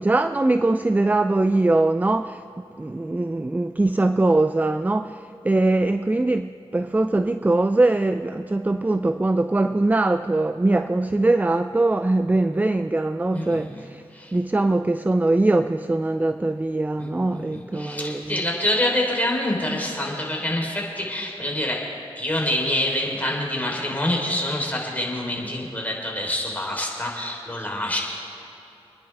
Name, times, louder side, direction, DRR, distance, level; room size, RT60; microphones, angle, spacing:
voice 1, 0.0-14.0 14.3-18.4, right 2 dB, 15° right, 0.4 m, -22 dB
voice 2, 13.3-13.9 14.1-14.3 17.0-21.8 22.2-28.0, left 1 dB, 15° left, 3.8 m, -26 dB
27.5 x 10.5 x 3.5 m
cardioid pair, 60°, 11 cm